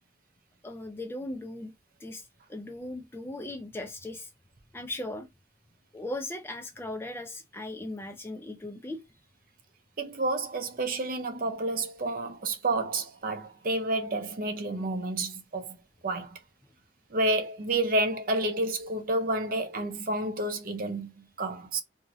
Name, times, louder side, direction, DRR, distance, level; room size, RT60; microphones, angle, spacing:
voice 1, 0.6-1.7 2.0-4.3 4.7-5.3 5.9-9.0, left 1 dB, 10° left, 0.3 m, -38 dB
voice 2, 10.0-15.7 16.0-16.3 17.1-21.8, right 2 dB, 50° right, 0.5 m, -30 dB
2.6 x 2.4 x 3.0 m
head